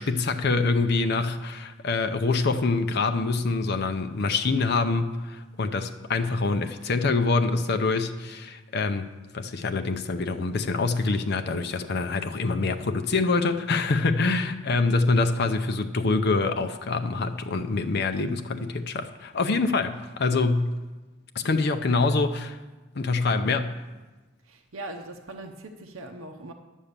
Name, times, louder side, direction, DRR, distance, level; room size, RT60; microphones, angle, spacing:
voice 1, 0.0-20.7 21.3-22.5 22.9-23.8, left 3 dB, 50° left, 7 dB, 0.6 m, -25 dB
voice 2, 24.4-26.5, right 2 dB, 75° right, 4 dB, 0.8 m, -40 dB
11.0 x 7.2 x 6.7 m, 1.2 s
head